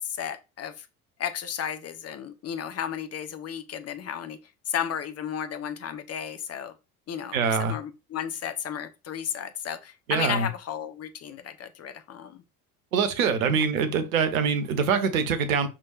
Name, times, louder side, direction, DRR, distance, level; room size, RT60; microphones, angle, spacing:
voice 1, 0.2-0.9 1.2-4.4 4.7-6.7 7.1-12.4 13.5-13.7, left 9 dB, 35° left, 1.0 m, -33 dB
voice 2, 7.3-7.8 10.1-10.5 12.9-15.7, right 6 dB, 70° right, 1.3 m, -24 dB
6.4 x 6.0 x 2.5 m
figure-of-eight pair, 60°, 43 cm